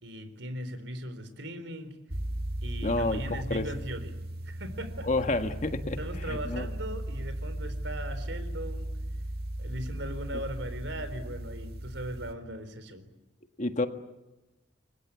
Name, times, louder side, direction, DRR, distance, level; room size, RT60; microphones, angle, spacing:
voice 1, 0.0-2.0 2.6-4.2 4.4-5.3 6.0-8.9 9.6-13.1, right 1 dB, 90° right, 11 dB, 3.9 m, -39 dB
sound 1, 2.1-12.3, right 1 dB, 60° right, 2.1 m, -36 dB
voice 2, 2.8-3.2 3.5-3.6 5.0-6.0 6.2-6.7 13.6-13.9, left 2 dB, 45° left, 7 dB, 1.7 m, -29 dB
29.5 x 24.0 x 8.5 m, 1.0 s
head